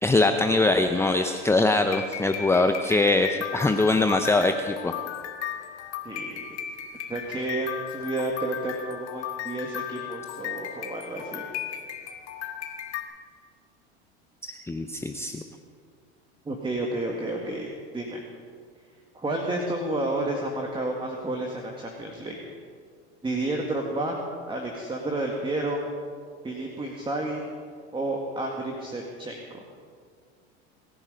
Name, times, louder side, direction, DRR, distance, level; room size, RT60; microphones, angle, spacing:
voice 1, 0.0-4.9 14.7-15.4, left 2 dB, 10° left, 6 dB, 0.7 m, -22 dB
sound 1, 1.0-13.0, left 10 dB, 85° left, 1.8 m, -36 dB
voice 2, 6.0-6.4 7.1-11.4 16.5-17.7 17.9-18.2 19.1-22.5 23.2-24.2 24.5-25.8 26.4-27.4 27.9-29.6, right 2 dB, 15° right, 1 dB, 2.1 m, -31 dB
25.5 x 11.0 x 5.2 m, 2.1 s
hypercardioid pair, 95°, 34 cm